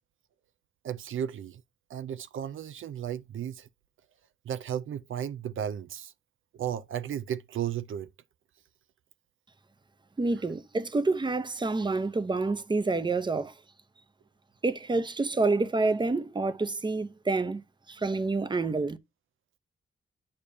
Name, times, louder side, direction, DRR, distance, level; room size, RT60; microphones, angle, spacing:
voice 1, 0.8-1.6 1.9-3.7 4.5-6.1 6.5-8.1, right 9 dB, 85° right, 0.5 m, -34 dB
voice 2, 10.2-13.5 14.6-19.0, right 3 dB, 20° right, 0.7 m, -28 dB
8.7 x 4.9 x 2.7 m
wide cardioid pair, 105°, 20 cm